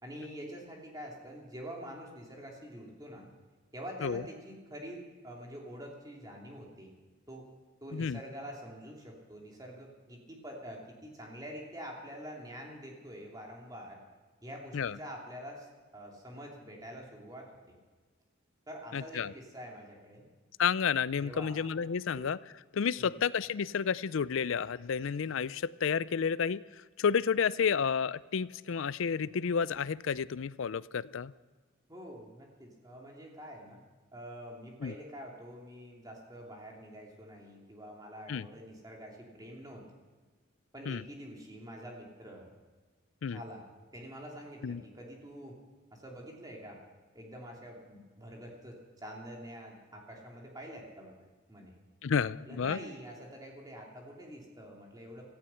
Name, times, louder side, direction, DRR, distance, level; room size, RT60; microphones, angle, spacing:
voice 1, 0.0-3.3 3.7-6.9 7.3-7.5 7.8-14.0 14.4-15.7 15.9-17.8 18.7-20.3 21.1-21.6 22.1-22.3 23.0-23.3 31.9-33.8 34.1-39.8 40.7-42.5 43.3-45.6 45.9-46.8 47.1-51.1 51.5-51.7 52.5-55.3, equal, 20° right, -1 dB, 2.9 m, -46 dB
voice 2, 18.9-19.3 20.6-22.4 22.7-26.6 27.0-31.3 34.8-34.9 38.3-38.5 40.9-41.0 43.2-43.4 44.6-44.8 52.0-52.8, left 6 dB, 70° left, 19 dB, 0.4 m, -31 dB
17.0 x 14.0 x 5.7 m, 1.4 s
head